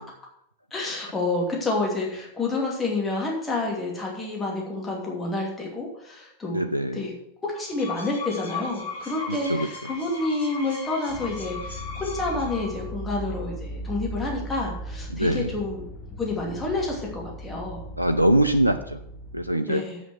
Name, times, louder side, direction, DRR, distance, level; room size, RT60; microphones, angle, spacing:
voice 1, 0.7-6.6 6.9-7.1 7.4-15.9 16.2-17.8 19.7-20.0, left 2 dB, 15° left, -2 dB, 2.7 m, -29 dB
voice 2, 6.5-7.0 9.3-9.7 15.1-15.5 18.0-19.0 19.3-19.8, right 1 dB, 85° right, 8 dB, 0.5 m, -23 dB
sound 1, 7.5-12.9, left 4 dB, 60° left, 3.0 m, -37 dB
sound 2, 11.1-19.5, right 1 dB, 30° left, 1.4 m, -37 dB
7.9 x 6.2 x 7.8 m, 0.73 s
figure-of-eight pair, 90°, 0 cm